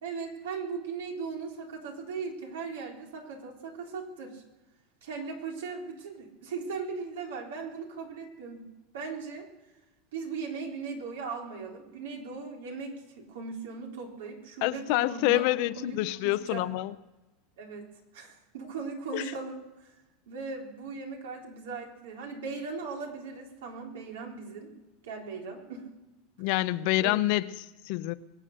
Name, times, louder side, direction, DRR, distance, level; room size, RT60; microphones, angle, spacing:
voice 1, 0.0-4.4 5.0-8.7 8.9-9.5 10.1-15.5 15.8-16.0 16.2-16.7 17.6-17.9 18.1-19.9 20.3-24.7 25.0-25.9 27.0-27.2, right 5 dB, 85° right, 0 dB, 3.7 m, -38 dB
voice 2, 14.6-16.9 19.1-19.3 26.4-28.1, left 18 dB, 65° left, 15 dB, 0.7 m, -27 dB
22.5 x 8.6 x 6.6 m, 1.1 s
supercardioid pair, 110°, 0 cm